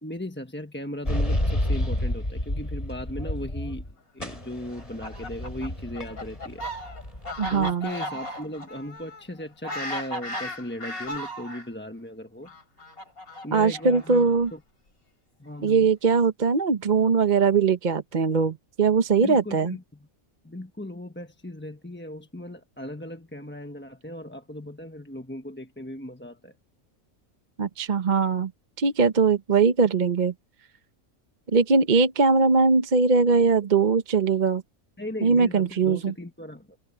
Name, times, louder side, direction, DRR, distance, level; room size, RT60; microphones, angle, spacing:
voice 1, 0.0-6.6 7.5-12.5 13.4-14.6 15.4-15.9 19.2-20.1 20.4-26.5 35.0-36.8, left 1 dB, 10° left, 1.1 m, -37 dB
sound 1, 1.1-3.9 4.2-7.7, left 1 dB, 25° left, 4.9 m, -30 dB
Fowl, 4.7-11.7 12.5-14.5, equal, 85° left, 4.9 m, -36 dB
voice 2, 7.4-7.9 13.5-14.5 15.6-19.7 27.6-28.5 28.8-30.3 31.5-34.6 35.2-36.1, right 4 dB, 40° right, 0.9 m, -21 dB
omnidirectional pair, 1.5 m